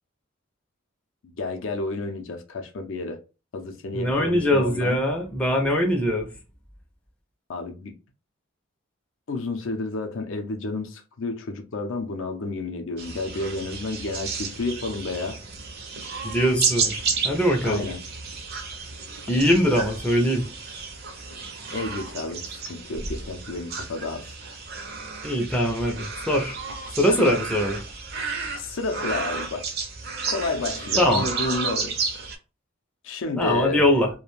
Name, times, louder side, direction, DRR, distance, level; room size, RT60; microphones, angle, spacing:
voice 1, 1.2-3.2 3.5-5.0 7.5-7.9 9.3-15.4 17.6-18.0 21.7-24.3 28.6-29.7 30.3-32.0 33.0-33.9, left 3 dB, 65° left, 0.5 m, -31 dB
voice 2, 3.9-6.3 16.2-17.0 17.2-17.9 19.3-20.5 25.2-26.6 27.0-27.8 31.0-31.3 33.4-34.1, equal, 5° left, 0.4 m, -22 dB
sound 1, 13.0-32.4, right 5 dB, 50° right, 0.5 m, -32 dB
2.4 x 2.1 x 3.0 m
head